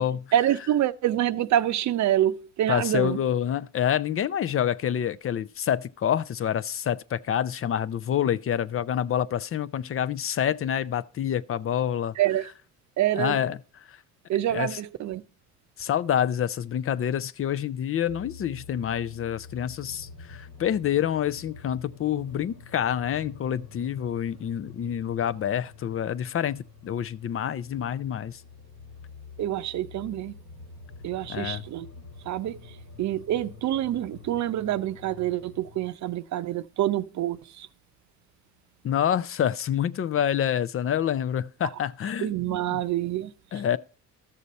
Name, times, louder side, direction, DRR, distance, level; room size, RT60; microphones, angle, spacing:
voice 1, 0.3-3.2 12.2-12.5 13.0-13.5 14.3-15.2 29.4-30.3 31.0-31.9 32.2-37.7 42.2-43.8, right 12 dB, 65° right, 0.6 m, -27 dB
voice 2, 2.7-12.2 13.2-13.6 13.9-14.0 14.5-14.7 15.8-28.4 31.3-31.6 38.8-42.3 43.5-43.8, left 9 dB, 45° left, 0.5 m, -27 dB
sound 1, 18.1-35.9, left 5 dB, 85° left, 2.3 m, -47 dB
13.0 x 6.8 x 4.1 m
cardioid pair, 90°, 30 cm